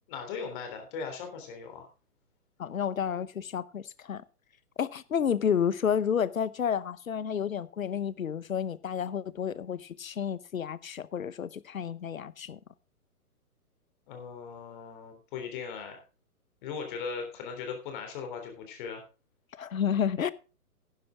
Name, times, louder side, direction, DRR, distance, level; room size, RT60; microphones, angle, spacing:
voice 1, 0.1-1.9 14.1-16.0 16.6-19.0, left 5 dB, 35° left, 3.6 m, -38 dB
voice 2, 2.6-4.2 4.8-12.6 19.5-20.3, left 8 dB, 60° left, 0.8 m, -30 dB
11.5 x 10.5 x 3.6 m
figure-of-eight pair, 125°, 45 cm